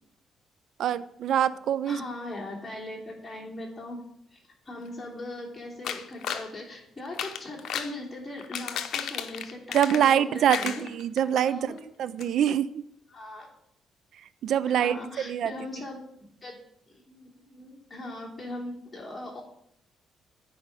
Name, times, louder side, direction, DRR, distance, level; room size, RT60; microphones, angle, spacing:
voice 1, 0.8-2.0 9.7-12.8 14.1-15.5, right 9 dB, 70° right, 16 dB, 0.3 m, -25 dB
voice 2, 1.9-4.0 4.3-10.8 11.5-11.8 13.1-13.5 14.6-16.6 16.9-19.4, left 1 dB, 20° left, -2 dB, 3.3 m, -40 dB
sound 1, 5.8-6.5 7.0-7.9 8.4-10.2 10.5-11.4 11.8-11.9 12.2-12.3, left 8 dB, 70° left, 0.7 m, -33 dB
9.7 x 5.0 x 5.4 m, 0.76 s
cardioid pair, 90°, 0 cm